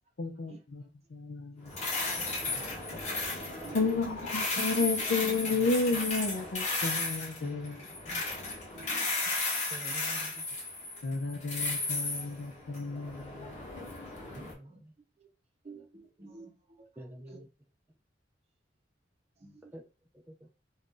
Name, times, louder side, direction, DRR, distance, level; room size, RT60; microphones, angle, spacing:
voice 1, 0.2-0.8 1.1-1.7 3.7-7.8 8.1-8.2 11.0-13.7, left 3 dB, 70° left, 7 dB, 0.5 m, -32 dB
sound 1, 1.7-14.5, left 2 dB, 40° left, 1.0 m, -35 dB
voice 2, 3.6-4.1 4.8-5.0 5.5-5.6 8.5-9.1 14.2-14.8 15.2-15.3 15.6-16.5 16.8-17.4 19.4-19.7, right 3 dB, 35° right, 2 dB, 0.7 m, -50 dB
voice 3, 5.5-6.0 7.4-8.3 9.2-9.3 9.7-10.5 14.4-15.0 17.0-17.5 19.7-19.8 20.1-20.5, right 1 dB, 10° right, 1 dB, 0.3 m, -48 dB
2.5 x 2.3 x 3.7 m, 0.33 s
head